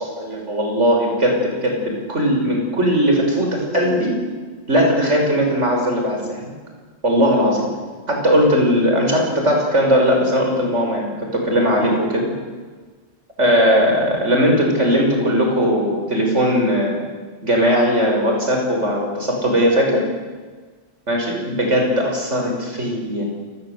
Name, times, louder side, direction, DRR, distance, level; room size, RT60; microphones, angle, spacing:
voice 1, 0.2-4.1 4.7-6.5 7.0-7.7 8.1-12.3 13.4-17.0 17.4-20.0 21.1-23.2, equal, 90° right, 1 dB, 6.4 m, -18 dB
29.0 x 18.5 x 8.2 m, 1.4 s
omnidirectional pair, 1.2 m